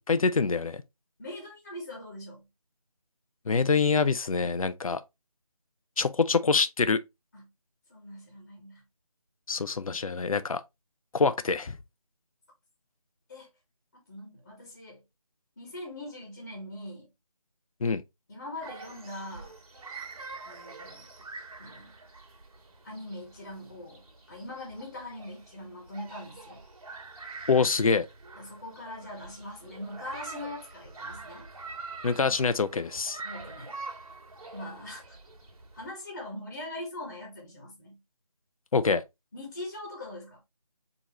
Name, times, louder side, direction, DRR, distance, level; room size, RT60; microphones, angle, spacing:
voice 1, 0.1-0.8 3.5-5.0 6.0-7.0 9.5-10.6 11.1-11.8 17.8-18.0 27.5-28.1 32.0-33.2 38.7-39.0, left 4 dB, 60° left, 0.5 m, -25 dB
voice 2, 1.2-2.5 7.3-7.5 7.9-8.8 13.3-13.5 14.1-15.0 15.6-17.1 18.3-19.5 20.4-21.1 21.6-22.0 22.8-26.6 28.3-31.5 33.2-33.8 34.5-35.2 35.7-38.0 39.3-40.4, left 1 dB, 25° left, 1.3 m, -42 dB
sound 1, 18.6-35.9, right 3 dB, 65° right, 1.6 m, -45 dB
4.6 x 3.0 x 3.0 m
figure-of-eight pair, 170°, 20 cm